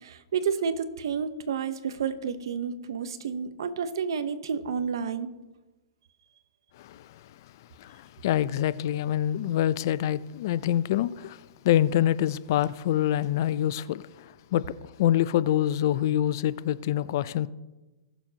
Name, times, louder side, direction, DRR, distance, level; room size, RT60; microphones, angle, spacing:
voice 1, 0.0-5.3, right 6 dB, 75° right, 0.9 m, -30 dB
voice 2, 6.8-7.2 7.8-14.7 15.0-17.5, left 12 dB, 55° left, 0.4 m, -26 dB
20.0 x 7.0 x 2.9 m
hypercardioid pair, 145°, 2 cm